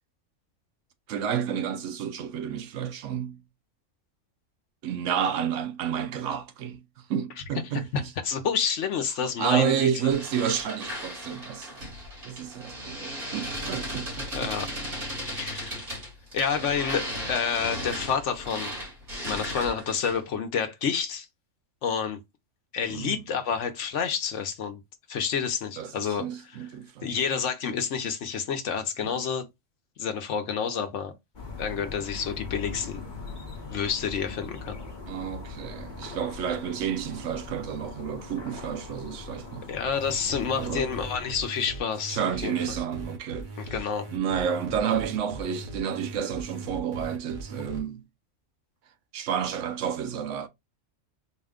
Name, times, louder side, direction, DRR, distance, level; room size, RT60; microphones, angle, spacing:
voice 1, 1.1-3.4 4.8-8.1 9.4-11.7 12.2-14.5 22.9-23.2 25.8-27.2 29.0-29.1 35.1-39.7 40.5-40.9 42.1-43.8 44.1-48.0 49.1-50.5, right 8 dB, 75° right, 0.9 m, -30 dB
voice 2, 7.7-9.9 14.3-14.7 15.3-15.9 16.3-18.8 19.2-21.3 21.8-22.2 22.7-24.8 25.1-26.6 27.0-29.4 30.0-31.1 31.6-33.0 33.7-34.8 39.7-42.6 43.6-44.1, left 7 dB, 70° left, 1.0 m, -29 dB
sound 1, 10.1-20.3, equal, 60° right, 2.4 m, -36 dB
sound 2, 31.3-41.3, left 3 dB, 40° left, 1.0 m, -40 dB
sound 3, 39.9-47.8, right 2 dB, 40° right, 1.1 m, -39 dB
4.2 x 2.2 x 3.6 m
omnidirectional pair, 1.3 m